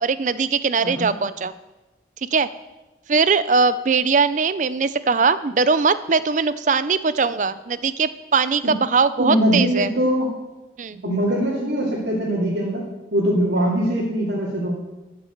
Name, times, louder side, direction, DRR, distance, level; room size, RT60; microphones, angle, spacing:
voice 1, 0.0-1.5 2.2-2.5 3.1-9.9 10.8-11.0, right 5 dB, 45° right, 15 dB, 0.5 m, -20 dB
voice 2, 9.2-10.3 11.0-12.8 13.1-14.8, equal, 85° right, -6 dB, 2.8 m, -22 dB
13.0 x 6.7 x 6.5 m, 1.1 s
head